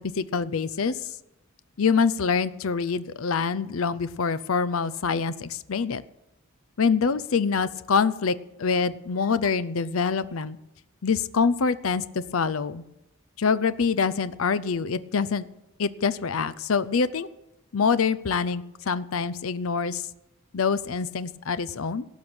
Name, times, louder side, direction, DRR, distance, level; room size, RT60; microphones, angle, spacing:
voice 1, 0.2-1.1 1.8-6.0 6.8-10.6 11.0-12.8 13.4-15.5 15.8-17.3 17.7-20.0 20.5-22.1, left 5 dB, 70° left, 15 dB, 0.6 m, -25 dB
17.5 x 6.2 x 8.8 m, 0.91 s
head